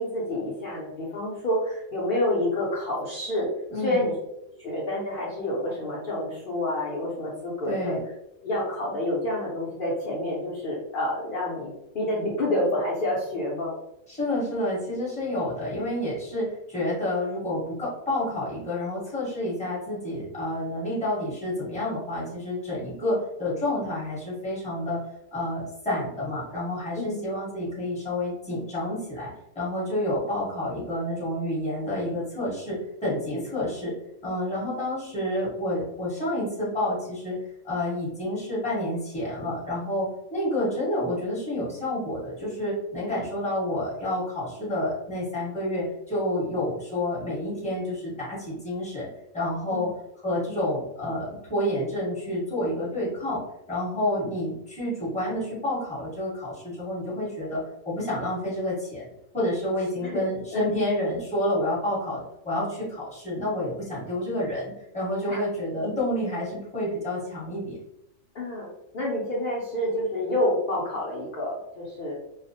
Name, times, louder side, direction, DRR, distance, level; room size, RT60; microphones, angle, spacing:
voice 1, 0.0-3.5 3.8-4.1 4.6-8.0 8.4-13.8 27.0-27.2 49.7-49.9 60.0-60.2 60.5-60.8 65.3-65.4 68.3-68.7 68.9-72.2, left 1 dB, 50° left, -6 dB, 0.7 m, -28 dB
voice 2, 3.7-4.0 7.7-8.0 14.1-25.0 25.3-33.9 34.2-37.4 37.6-49.1 49.3-49.9 50.2-53.4 53.7-59.1 59.3-67.8, left 1 dB, 5° left, -8 dB, 0.9 m, -29 dB
2.3 x 2.0 x 2.6 m, 0.84 s
omnidirectional pair, 1.3 m